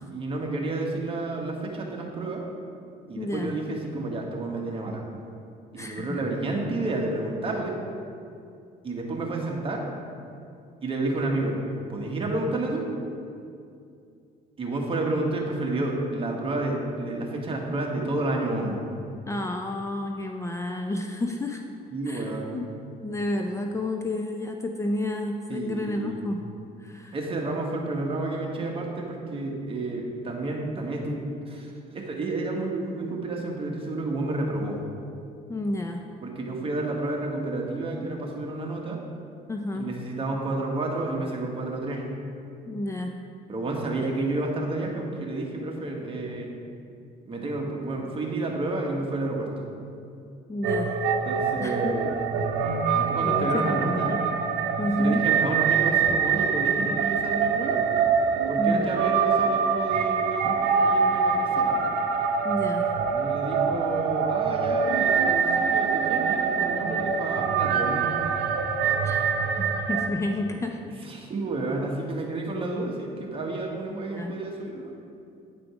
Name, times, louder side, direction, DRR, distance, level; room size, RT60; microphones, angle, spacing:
voice 1, 0.0-2.5 3.1-5.0 5.7-7.8 8.8-9.9 10.8-11.6 11.9-12.9 14.6-18.8 21.9-22.6 25.5-26.3 27.1-34.8 36.2-39.0 39.7-42.1 43.5-46.5 47.2-49.7 51.2-52.3 52.9-54.2 54.9-57.9 58.5-61.8 63.1-68.2 71.0-75.0, right 2 dB, 30° right, 0 dB, 1.4 m, -30 dB
voice 2, 3.2-3.5 5.8-6.2 19.3-21.6 22.1-22.6 23.0-26.4 26.8-27.1 35.5-36.0 39.5-39.9 42.7-43.2 50.5-51.0 51.6-52.0 53.2-54.2 54.8-55.3 58.6-58.8 62.4-62.9 69.0-70.8 72.5-72.9 73.9-74.4, left 1 dB, 15° left, 3 dB, 0.4 m, -30 dB
sound 1, 50.6-70.1, right 6 dB, 90° right, 0.7 m, -24 dB
9.2 x 5.0 x 4.9 m, 2.5 s
cardioid pair, 110°, 17 cm